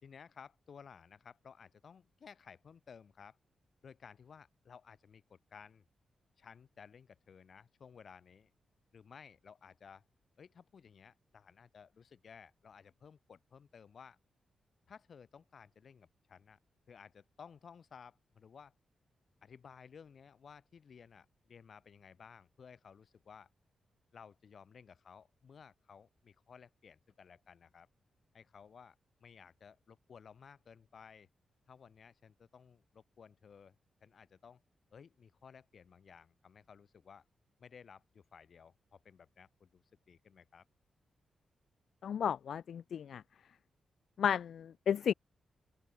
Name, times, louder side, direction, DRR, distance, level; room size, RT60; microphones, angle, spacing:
voice 1, 0.0-3.4 3.8-5.8 6.4-8.5 8.9-10.0 10.4-14.2 14.9-16.6 16.9-18.7 19.4-23.5 24.1-27.9 28.3-28.9 29.2-31.3 31.7-34.6 34.9-37.2 37.6-40.6, left 6 dB, 55° left, 3.1 m, -56 dB
voice 2, 42.0-43.2 44.2-45.1, left 8 dB, 75° left, 0.3 m, -33 dB
open air
cardioid pair, 105°, 0 cm